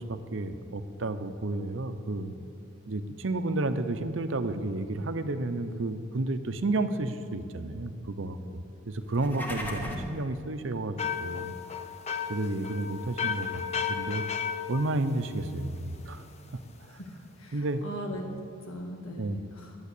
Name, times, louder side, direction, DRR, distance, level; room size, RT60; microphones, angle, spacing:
voice 1, 0.0-2.3 2.9-8.4 8.9-11.5 12.3-13.6 13.9-14.2 14.7-16.2 17.5-17.8 19.2-19.4, right 2 dB, 65° right, 10 dB, 0.7 m, -31 dB
sound 1, 9.0-10.2, equal, 10° left, 1.7 m, -36 dB
sound 2, 11.0-15.9, left 7 dB, 30° left, 0.7 m, -34 dB
voice 2, 16.9-18.2 18.6-19.8, equal, 90° left, 1 dB, 1.7 m, -40 dB
11.0 x 9.5 x 8.3 m, 2.5 s
head